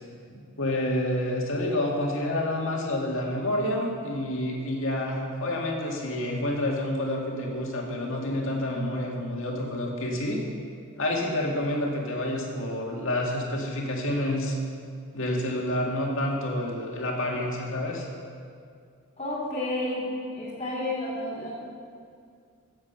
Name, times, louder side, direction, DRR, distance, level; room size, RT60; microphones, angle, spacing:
voice 1, 0.6-10.4 11.0-14.6 15.1-18.0, left 1 dB, 60° left, -1 dB, 2.1 m, -28 dB
voice 2, 19.2-21.5, left 1 dB, 25° left, -10 dB, 2.8 m, -31 dB
15.5 x 7.7 x 5.8 m, 2.3 s
head